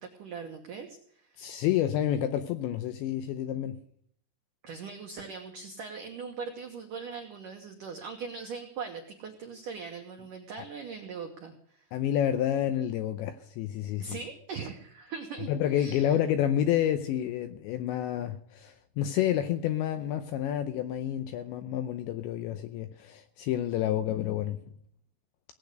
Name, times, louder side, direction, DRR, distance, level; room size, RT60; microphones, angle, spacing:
voice 1, 0.0-1.5 4.6-11.9 14.0-16.2, right 5 dB, 85° right, 1.8 m, -41 dB
voice 2, 1.4-3.8 10.6-10.7 11.9-14.2 15.5-24.6, left 11 dB, 80° left, 2.6 m, -29 dB
18.0 x 8.5 x 6.5 m
omnidirectional pair, 5.9 m